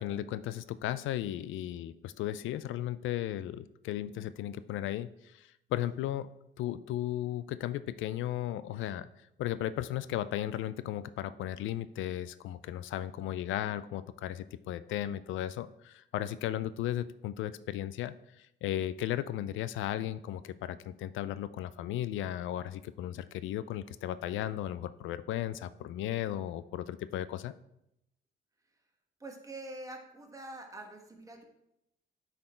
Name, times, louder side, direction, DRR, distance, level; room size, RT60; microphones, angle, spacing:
voice 1, 0.0-6.3 6.6-9.1 9.4-27.5, left 12 dB, 80° left, 15 dB, 0.4 m, -35 dB
voice 2, 29.2-31.5, right 2 dB, 15° right, 2 dB, 1.4 m, -45 dB
8.8 x 4.3 x 4.3 m, 0.83 s
cardioid pair, 90°, 20 cm